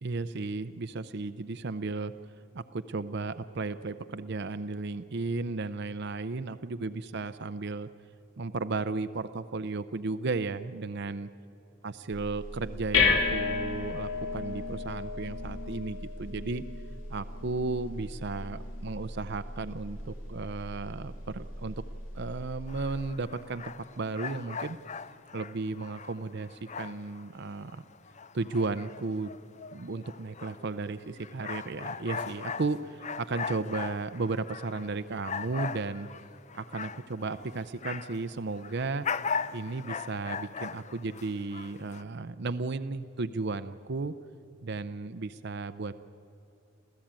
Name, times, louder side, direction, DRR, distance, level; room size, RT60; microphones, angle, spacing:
voice 1, 0.0-2.1 2.5-7.9 8.4-11.3 11.8-16.6 17.1-21.8 22.1-24.8 25.3-27.8 28.3-29.3 29.7-36.1 36.5-39.1 39.5-44.1 44.6-46.0, right 3 dB, 50° right, 12 dB, 0.6 m, -34 dB
sound 1, 12.1-23.1, left 4 dB, 60° left, 2.4 m, -34 dB
sound 2, 22.7-27.3 27.7-38.3 38.5-42.0, left 5 dB, 35° left, 0.5 m, -39 dB
27.0 x 15.0 x 8.9 m, 2.8 s
head